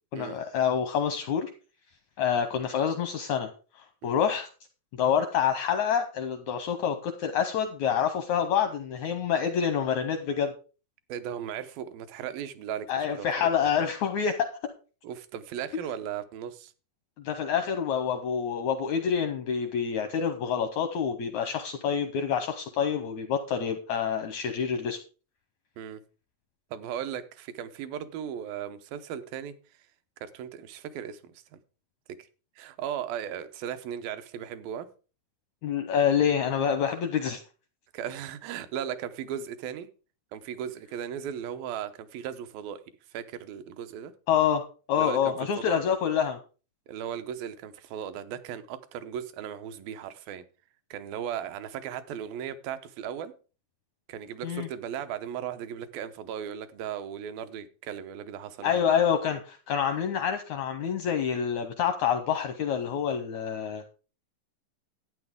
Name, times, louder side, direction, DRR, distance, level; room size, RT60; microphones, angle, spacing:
voice 1, 0.1-1.5 2.2-4.5 5.0-10.5 12.9-14.5 17.2-25.0 35.6-37.4 44.3-44.6 44.9-46.4 54.4-54.7 58.6-63.8, left 8 dB, 80° left, 7 dB, 1.6 m, -27 dB
voice 2, 11.1-13.9 15.0-16.7 25.8-26.0 26.7-29.5 30.2-31.6 32.6-34.9 37.9-39.9 40.3-42.8 43.1-44.1 45.0-46.0 46.9-50.4 50.9-53.3 54.1-59.0, right 9 dB, 80° right, 11 dB, 2.6 m, -37 dB
12.5 x 9.0 x 3.6 m, 0.35 s
omnidirectional pair, 4.3 m